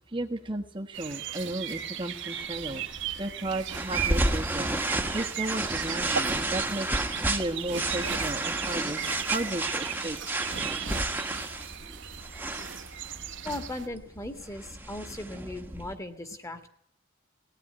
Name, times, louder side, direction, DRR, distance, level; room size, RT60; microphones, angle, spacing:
voice 1, 0.1-2.8 3.2-6.9 7.3-10.2, right 1 dB, 25° right, -2 dB, 1.4 m, -34 dB
sound 1, 0.9-13.9, right 9 dB, 60° right, 1.6 m, -37 dB
sound 2, 2.3-15.9, right 2 dB, 10° right, 1.4 m, -32 dB
voice 2, 13.4-16.7, left 1 dB, 15° left, 8 dB, 2.0 m, -38 dB
19.5 x 18.0 x 9.9 m, 0.68 s
head